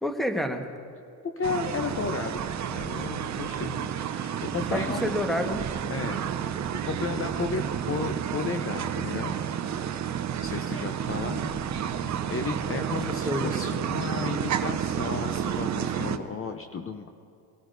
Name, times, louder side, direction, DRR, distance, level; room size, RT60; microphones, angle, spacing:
voice 1, 0.0-0.6 4.7-5.6 11.3-13.0 13.2-13.8, equal, ahead, 4 dB, 1.4 m, -31 dB
voice 2, 1.2-2.4 2.7-5.1 5.9-6.6 6.9-9.4 10.4-11.4 11.8-17.1, left 5 dB, 30° left, 5 dB, 0.8 m, -34 dB
sound 1, 1.4-16.2, right 8 dB, 40° right, 0.7 m, -30 dB
23.0 x 13.5 x 2.7 m, 2.4 s
supercardioid pair, 80°, 43 cm